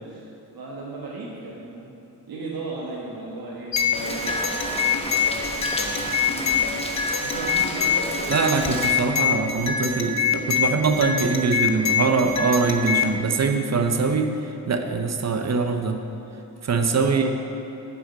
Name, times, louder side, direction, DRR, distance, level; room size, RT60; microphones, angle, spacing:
voice 1, 0.0-1.9 2.3-8.3 16.9-17.2, right 3 dB, 65° right, -4 dB, 1.3 m, -36 dB
sound 1, 3.7-13.2, left 6 dB, 45° left, 1.0 m, -25 dB
Rain, 3.9-8.9, left 1 dB, 15° left, 1.2 m, -32 dB
voice 2, 8.3-14.3 14.7-16.0 16.6-17.3, right 4 dB, 45° right, 6 dB, 0.8 m, -23 dB
8.1 x 4.9 x 7.4 m, 2.8 s
supercardioid pair, 50°, 39 cm